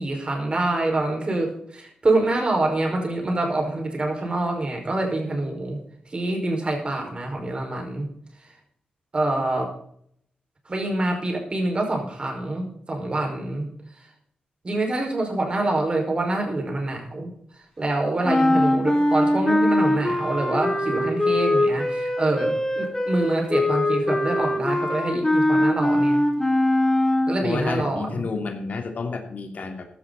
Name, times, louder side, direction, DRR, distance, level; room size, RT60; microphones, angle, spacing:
voice 1, 0.0-5.8 6.1-8.1 9.1-9.7 10.7-13.7 14.6-17.3 17.8-26.2 27.3-28.3, right 2 dB, 35° right, 2 dB, 5.4 m, -26 dB
sound 1, 18.2-27.4, left 1 dB, 15° left, 3.7 m, -22 dB
voice 2, 27.4-29.9, left 4 dB, 60° left, 5 dB, 2.8 m, -30 dB
15.5 x 12.0 x 4.2 m, 0.66 s
cardioid pair, 70°, 3 cm